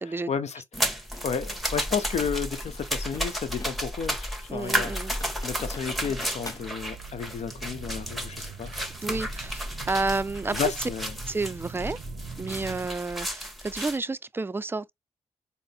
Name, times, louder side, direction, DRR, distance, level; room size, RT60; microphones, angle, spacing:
voice 1, 0.3-4.9 5.4-8.8 10.5-11.1, left 6 dB, 70° left, 0.7 m, -32 dB
sound 1, 0.7-14.0, equal, ahead, 1.2 m, -33 dB
sound 2, 1.1-1.3 2.7-4.0 4.4-4.5 4.9-6.7, left 3 dB, 30° left, 0.7 m, -45 dB
voice 2, 4.5-5.2 9.0-10.9 11.3-12.0 12.4-14.9, right 3 dB, 20° right, 0.4 m, -30 dB
Car / Engine, 5.7-12.9, right 8 dB, 85° right, 0.4 m, -44 dB
4.0 x 2.0 x 3.4 m
supercardioid pair, 40°, 12 cm